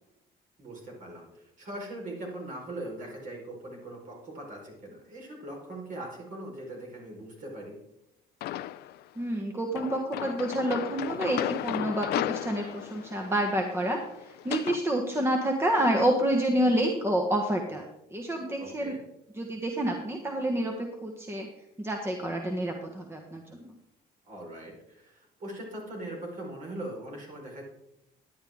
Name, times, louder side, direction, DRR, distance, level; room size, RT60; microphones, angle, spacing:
voice 1, 0.6-7.8 18.6-19.0 24.3-27.6, right 1 dB, 50° right, -1 dB, 4.4 m, -41 dB
sound 1, 8.4-9.0 9.7-14.8, left 14 dB, 70° left, 0.4 m, -34 dB
voice 2, 9.2-17.8 18.1-18.9 19.3-21.5 21.8-23.7, right 1 dB, 15° right, 3 dB, 1.3 m, -28 dB
11.5 x 10.0 x 3.6 m, 0.85 s
cardioid pair, 110°, 17 cm